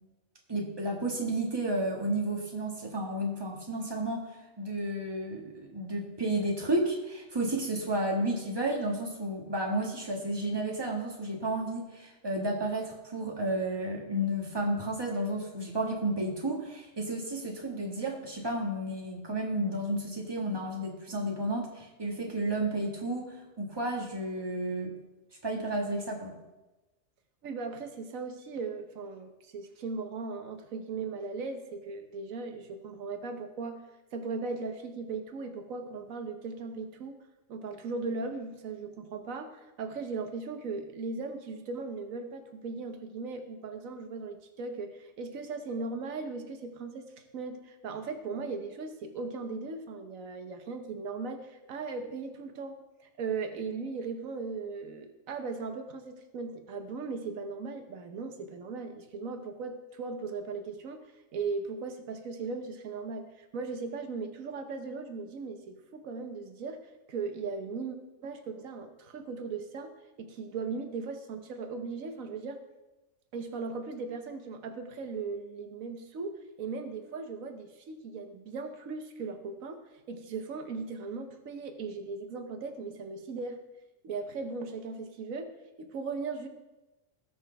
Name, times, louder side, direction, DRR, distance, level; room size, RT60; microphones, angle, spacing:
voice 1, 0.5-4.3 4.6-24.9 25.4-26.3, right 1 dB, 20° right, 0 dB, 1.6 m, -32 dB
voice 2, 27.4-33.8 34.1-37.2 37.5-47.1 47.3-52.7 53.2-61.0 61.3-66.8 67.1-68.0 68.2-69.9 70.2-72.6 73.3-79.8 80.1-83.6 84.0-85.5 85.8-86.5, right 4 dB, 85° right, 6 dB, 1.3 m, -38 dB
18.5 x 6.3 x 3.4 m, 1.0 s
omnidirectional pair, 1.4 m